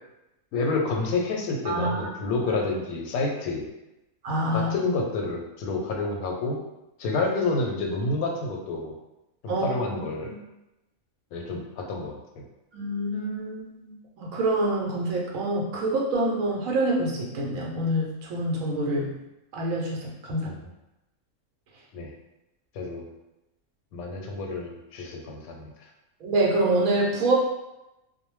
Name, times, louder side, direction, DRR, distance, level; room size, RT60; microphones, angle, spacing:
voice 1, 0.5-3.7 4.5-6.6 7.0-8.9 9.4-10.3 11.3-12.4 20.4-20.6 21.9-22.1 22.7-23.0 23.9-25.6, left 3 dB, 85° left, 1 dB, 1.0 m, -29 dB
voice 2, 1.6-2.1 4.2-4.7 9.5-9.8 10.2-10.4 12.7-19.1 19.5-20.5 26.2-27.4, right 1 dB, 75° right, -3 dB, 1.1 m, -26 dB
2.6 x 2.1 x 3.0 m, 0.94 s
omnidirectional pair, 1.5 m